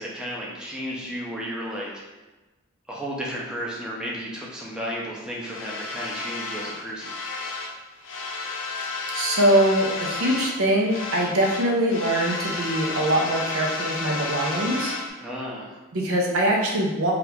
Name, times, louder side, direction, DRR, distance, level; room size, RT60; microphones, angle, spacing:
voice 1, 0.0-1.9 2.9-7.1 15.2-15.8, equal, 5° right, -5 dB, 0.5 m, -33 dB
sound 1, 5.4-7.8 8.0-10.6 10.9-15.1, left 3 dB, 65° left, 0.5 m, -32 dB
voice 2, 9.1-14.9 15.9-17.1, right 1 dB, 80° right, -1 dB, 0.6 m, -23 dB
2.8 x 2.4 x 3.4 m, 1.1 s
head